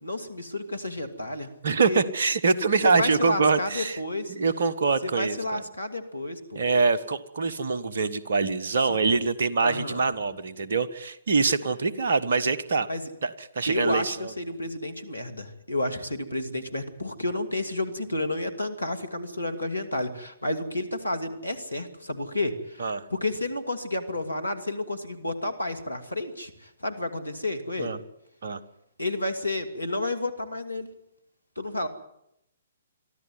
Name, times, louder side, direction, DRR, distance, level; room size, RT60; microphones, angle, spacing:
voice 1, 0.0-2.0 2.8-4.3 5.0-6.6 8.9-9.0 9.6-10.0 12.9-13.0 13.7-27.9 29.0-30.9 31.6-31.9, left 2 dB, 85° left, 10 dB, 2.6 m, -31 dB
voice 2, 1.6-4.0 4.3-5.6 6.5-12.9 13.2-14.3 22.8-23.0 27.8-28.0 28.4-28.6, right 4 dB, 60° right, 12 dB, 1.4 m, -24 dB
24.0 x 14.0 x 9.8 m, 0.79 s
figure-of-eight pair, 125°, 0 cm